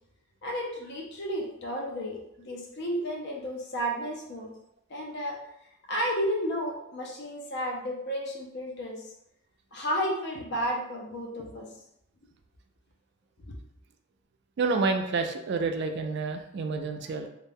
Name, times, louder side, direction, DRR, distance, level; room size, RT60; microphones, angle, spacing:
voice 1, 0.4-4.5 4.9-5.4 5.9-9.1 9.7-11.7 13.5-13.6, equal, 50° left, -1 dB, 0.5 m, -32 dB
voice 2, 14.6-17.3, right 4 dB, 50° right, 6 dB, 0.3 m, -29 dB
2.4 x 2.1 x 3.3 m, 0.79 s
head